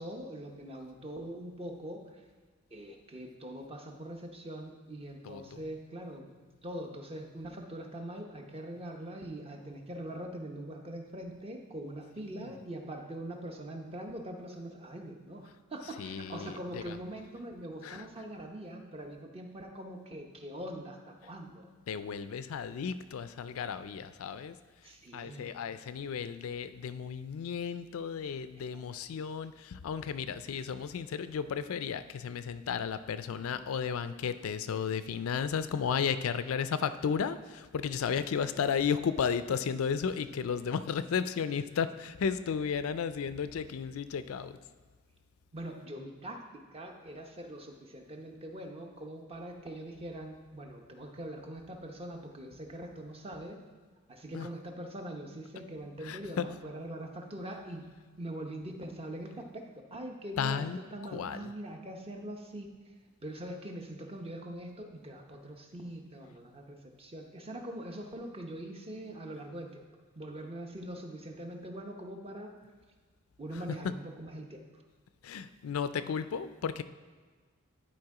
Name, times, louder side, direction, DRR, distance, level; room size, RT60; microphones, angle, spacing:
voice 1, 0.0-2.3 2.7-6.3 6.6-21.7 24.8-25.5 28.6-28.7 45.5-53.6 54.1-57.8 58.2-62.7 63.2-69.7 70.1-72.5 73.4-74.6, right 1 dB, 30° right, 3 dB, 0.8 m, -43 dB
voice 2, 5.2-5.6 12.3-12.5 16.0-17.0 17.8-18.1 21.9-24.6 25.1-44.6 54.3-54.5 56.0-56.4 60.4-60.8 61.1-61.5 73.5-73.9 75.2-76.8, left 6 dB, 80° left, 12 dB, 0.4 m, -34 dB
10.5 x 4.4 x 4.8 m, 1.5 s
head